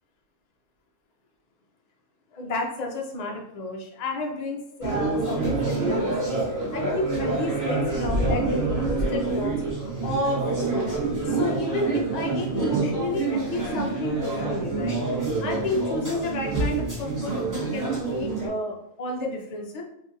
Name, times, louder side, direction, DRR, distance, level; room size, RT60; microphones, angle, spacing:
voice 1, 2.3-10.9 11.2-19.8, left 2 dB, 90° left, 1 dB, 0.3 m, -31 dB
sound 1, 4.8-18.5, right 3 dB, 20° right, 0.6 m, -27 dB
3.7 x 2.6 x 2.6 m, 0.80 s
omnidirectional pair, 1.5 m